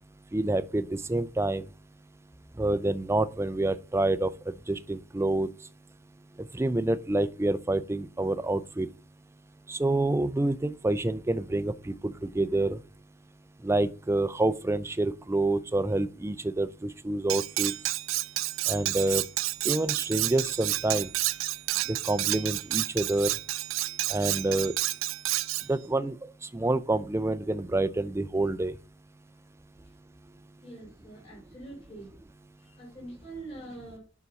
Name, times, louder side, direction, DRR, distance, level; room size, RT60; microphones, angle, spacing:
voice 1, 0.3-1.6 2.6-4.3 4.7-5.5 6.5-8.9 9.7-12.8 13.6-17.7 18.7-19.2 19.6-21.1 21.9-23.3 24.1-24.7 25.7-26.2 26.5-28.7, right 2 dB, 15° right, 0.4 m, -27 dB
Cutlery silverware, 17.3-25.7, right 17 dB, 80° right, 0.4 m, -30 dB
voice 2, 30.6-32.1 32.6-34.0, right 2 dB, 35° left, 4.8 m, -44 dB
9.5 x 5.9 x 4.0 m
head